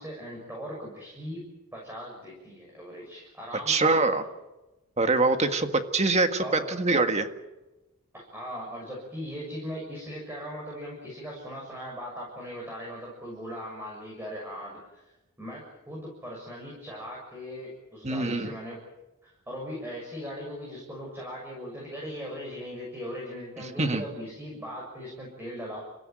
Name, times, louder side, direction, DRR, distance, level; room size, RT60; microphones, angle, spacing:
voice 1, 0.0-4.2 6.4-6.8 8.1-15.1 15.4-18.8 19.2-25.8, equal, 10° right, -3 dB, 6.6 m, -39 dB
voice 2, 3.7-4.2 5.0-5.7 5.9-7.3 18.0-18.5 23.8-24.0, right 3 dB, 30° right, 7 dB, 1.7 m, -24 dB
29.0 x 16.0 x 9.2 m, 1.0 s
head